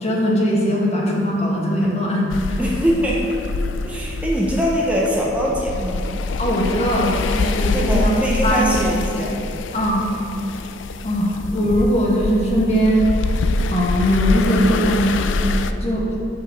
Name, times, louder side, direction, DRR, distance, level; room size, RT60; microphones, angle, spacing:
voice 1, 0.0-2.6 3.8-3.9 6.4-8.2 8.4-9.0 9.7-10.1 11.0-13.1 13.7-15.2 15.8-16.1, equal, 35° left, -3 dB, 1.3 m, -20 dB
sound 1, 2.3-15.7, left 3 dB, 75° left, 0.4 m, -25 dB
voice 2, 2.6-3.4 3.8-6.0 7.7-9.4, equal, 5° right, -4 dB, 0.6 m, -22 dB
5.6 x 5.2 x 6.4 m, 2.8 s
head